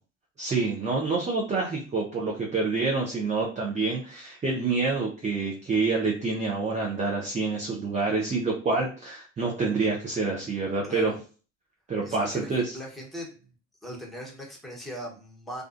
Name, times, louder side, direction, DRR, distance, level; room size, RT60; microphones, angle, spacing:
voice 1, 0.4-11.1 11.9-12.8, right 3 dB, 20° right, -1 dB, 0.5 m, -27 dB
voice 2, 10.8-11.2 12.0-13.5 13.8-15.6, equal, ahead, -2 dB, 0.9 m, -40 dB
2.3 x 2.3 x 2.5 m, 0.37 s
hypercardioid pair, 75°, 39 cm